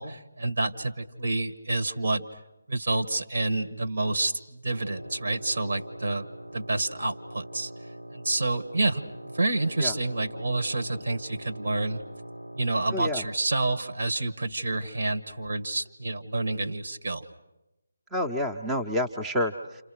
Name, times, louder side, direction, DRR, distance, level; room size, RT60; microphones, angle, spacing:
voice 1, 0.0-2.2 2.7-6.3 6.5-7.7 8.1-12.0 12.5-17.2, right 2 dB, 60° right, 7 dB, 1.8 m, -28 dB
Wind instrument woodwind instrument, 4.7-13.2, equal, 85° right, 5.1 m, -43 dB
voice 2, 12.9-13.2 18.1-19.8, left 1 dB, 10° right, 4 dB, 0.9 m, -28 dB
29.5 x 28.0 x 6.4 m, 0.97 s
figure-of-eight pair, 150°, 0 cm